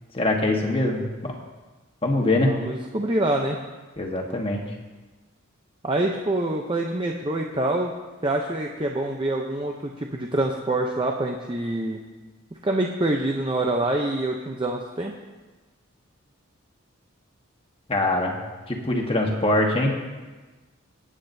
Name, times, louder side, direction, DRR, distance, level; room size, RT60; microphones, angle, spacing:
voice 1, 0.1-1.4 2.0-2.5 4.0-4.6 17.9-18.4 18.7-19.9, left 2 dB, 25° left, 1 dB, 1.3 m, -23 dB
voice 2, 2.5-3.6 5.8-7.9 8.2-12.0 12.6-15.1, right 1 dB, 25° right, 1 dB, 0.6 m, -26 dB
23.0 x 8.8 x 2.7 m, 1.3 s
head